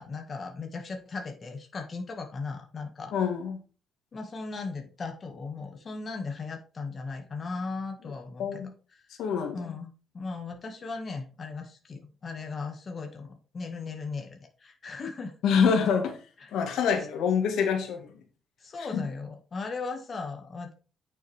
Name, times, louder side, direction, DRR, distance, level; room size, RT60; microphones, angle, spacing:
voice 1, 0.0-3.1 4.1-8.6 9.5-15.3 16.4-16.5 18.6-20.7, left 4 dB, 40° left, 4 dB, 1.9 m, -37 dB
voice 2, 3.1-3.6 8.4-8.7 9.2-9.7 15.4-16.2 16.5-18.1 18.9-19.0, left 6 dB, 85° left, 5 dB, 1.9 m, -26 dB
9.3 x 6.3 x 3.5 m, 0.35 s
cardioid pair, 115°, 0 cm